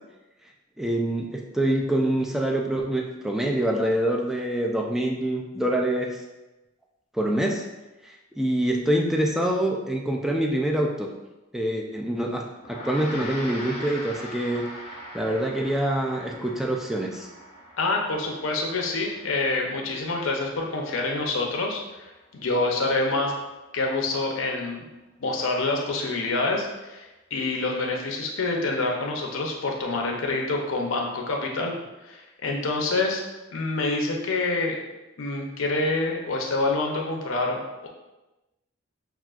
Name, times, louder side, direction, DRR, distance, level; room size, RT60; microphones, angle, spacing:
voice 1, 0.8-6.2 7.1-7.7 8.0-11.1 11.5-14.6 15.1-17.3, right 1 dB, ahead, 1 dB, 0.3 m, -25 dB
Gong, 12.6-22.2, left 1 dB, 30° left, 0.8 m, -42 dB
voice 2, 17.8-23.3 23.7-24.8 25.2-31.7 32.0-33.2 33.5-34.8 35.2-37.9, left 2 dB, 75° left, 0 dB, 0.7 m, -27 dB
5.8 x 2.4 x 2.4 m, 1.1 s
head